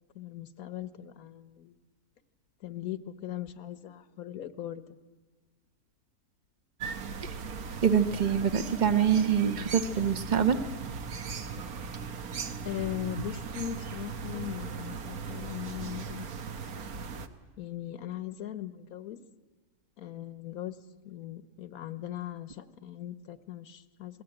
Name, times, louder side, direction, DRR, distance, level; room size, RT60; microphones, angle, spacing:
voice 1, 0.1-1.7 2.6-4.8 9.6-9.7 12.6-16.3 17.6-19.2 20.0-20.8 21.0-24.2, left 12 dB, 70° left, 13 dB, 1.5 m, -39 dB
sound 1, 6.8-17.3, right 5 dB, 75° right, 1.6 m, -38 dB
voice 2, 7.8-10.6, right 8 dB, 30° right, 10 dB, 1.2 m, -25 dB
27.0 x 20.0 x 8.9 m, 1.2 s
omnidirectional pair, 1.6 m